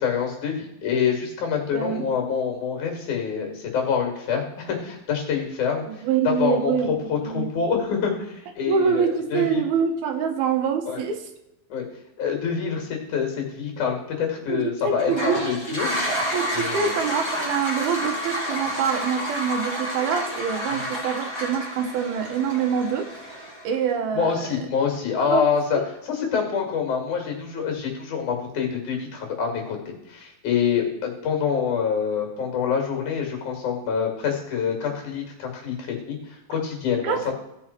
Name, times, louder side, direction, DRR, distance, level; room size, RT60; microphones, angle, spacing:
voice 1, 0.0-5.8 6.3-9.6 10.9-11.0 11.7-11.9 12.2-15.9 16.5-16.9 20.7-20.8 24.1-37.2, left 6 dB, 60° left, 2 dB, 3.4 m, -26 dB
voice 2, 1.7-2.0 5.9-7.5 8.7-11.3 14.5-15.4 15.7-15.8 16.3-23.1 23.6-24.6 25.2-25.5 25.8-25.9 37.0-37.3, right 7 dB, 90° right, 5 dB, 3.1 m, -25 dB
Toilet flush, 14.9-23.8, equal, 5° right, 2.9 m, -30 dB
16.0 x 6.3 x 4.3 m, 0.91 s
omnidirectional pair, 4.2 m